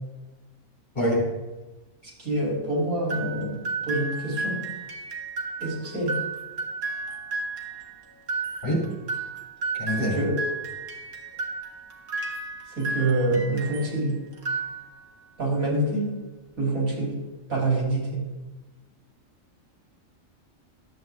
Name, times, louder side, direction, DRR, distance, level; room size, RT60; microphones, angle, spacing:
voice 1, 0.9-1.3 8.6-8.9 9.8-10.2, equal, 35° left, -5 dB, 3.1 m, -25 dB
voice 2, 2.2-3.6 3.8-4.6 5.6-6.2 10.0-10.4 12.7-14.2 15.4-16.1 16.6-17.2 17.5-18.2, right 2 dB, 85° right, -4 dB, 3.7 m, -26 dB
sound 1, 3.1-14.0 14.3-15.2, right 3 dB, 65° right, 1.8 m, -33 dB
13.0 x 7.6 x 3.4 m, 1.1 s
omnidirectional pair, 1.4 m